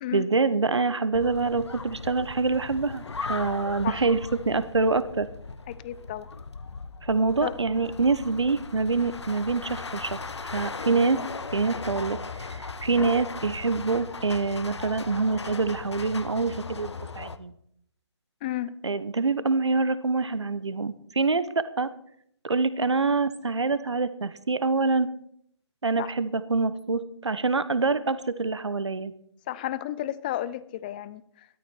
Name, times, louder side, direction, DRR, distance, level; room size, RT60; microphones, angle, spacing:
voice 1, 0.1-3.0 3.3-4.2 4.5-5.3 7.0-11.2 11.5-12.2 12.5-17.5 18.8-21.9 22.4-25.1 25.8-29.1, right 4 dB, 70° right, 14 dB, 1.1 m, -25 dB
sound 1, 1.1-17.4, left 4 dB, 70° left, 0.9 m, -38 dB
voice 2, 5.7-6.3 7.4-7.5 18.4-18.7 26.0-26.1 29.5-31.6, left 13 dB, 20° left, 17 dB, 0.4 m, -33 dB
13.5 x 13.0 x 4.5 m, 0.69 s
figure-of-eight pair, 140°, 15 cm